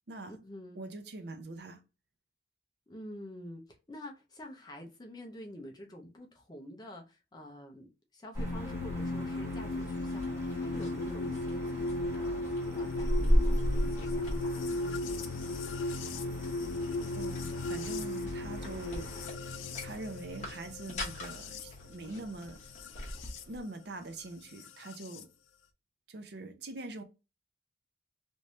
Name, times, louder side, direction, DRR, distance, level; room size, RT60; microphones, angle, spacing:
voice 1, 0.2-0.8 2.9-12.4 12.7-14.9, left 1 dB, 20° left, 0.6 m, -48 dB
voice 2, 0.8-1.8 17.1-19.1 19.8-23.1 23.5-25.3 26.1-27.0, right 2 dB, 60° right, 0.6 m, -43 dB
sound 1, 8.3-19.3, equal, 15° right, 1.3 m, -35 dB
sound 2, 8.4-23.4 24.6-25.2, left 2 dB, 85° left, 0.4 m, -36 dB
sound 3, 9.6-23.6, left 1 dB, 40° left, 1.2 m, -48 dB
3.2 x 3.1 x 2.7 m
head